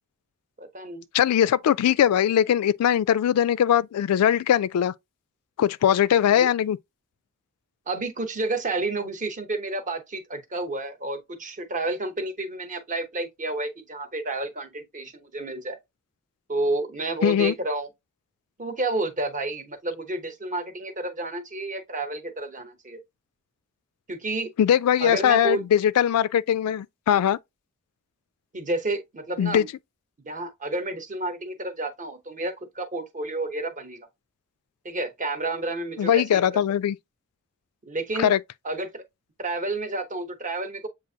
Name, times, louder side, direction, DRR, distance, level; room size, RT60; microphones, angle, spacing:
voice 1, 0.6-1.0 6.3-6.5 7.9-15.8 16.5-17.9 18.6-23.0 24.1-24.5 25.0-25.6 28.5-29.7 30.2-34.1 34.8-36.4 37.9-38.3 38.6-39.0 39.4-40.9, right 2 dB, 35° right, 0.9 m, -30 dB
voice 2, 1.1-4.9 5.6-6.8 17.2-17.5 24.6-27.4 29.4-29.6 36.0-37.0 38.2-38.4, left 9 dB, 80° left, 0.3 m, -21 dB
7.3 x 2.5 x 2.7 m
head